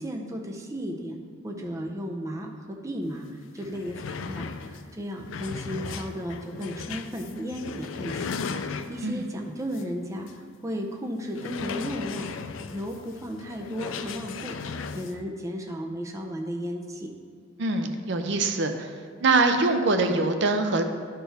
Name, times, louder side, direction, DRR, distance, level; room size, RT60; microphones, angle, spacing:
voice 1, 0.0-12.3 12.7-17.1, equal, 15° right, 2 dB, 0.5 m, -35 dB
sound 1, 3.2-3.3 3.5-9.2 9.7-9.9 10.3-10.4 11.3-15.2, left 5 dB, 75° left, 0.4 m, -36 dB
voice 2, 17.6-18.9 19.2-20.8, right 3 dB, 65° right, 6 dB, 0.5 m, -23 dB
11.5 x 4.5 x 3.4 m, 2.1 s
head